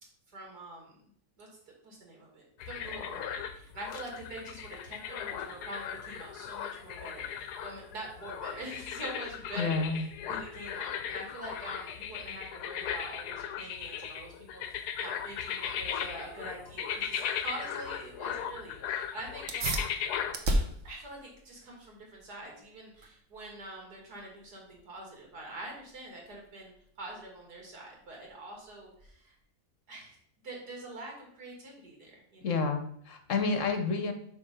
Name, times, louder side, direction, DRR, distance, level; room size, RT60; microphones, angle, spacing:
voice 1, 0.3-1.0 1.4-1.5 1.8-19.9 20.8-29.4 29.9-30.2 30.4-32.6, right 2 dB, 85° right, -1 dB, 2.7 m, -45 dB
sound 1, 2.6-20.4, left 8 dB, 85° left, 1.2 m, -37 dB
voice 2, 9.6-10.1 32.4-34.1, left 4 dB, 60° left, 7 dB, 1.1 m, -29 dB
sound 2, 19.5-29.4, right 1 dB, 55° right, 1.2 m, -38 dB
5.5 x 5.3 x 5.3 m, 0.66 s
omnidirectional pair, 1.7 m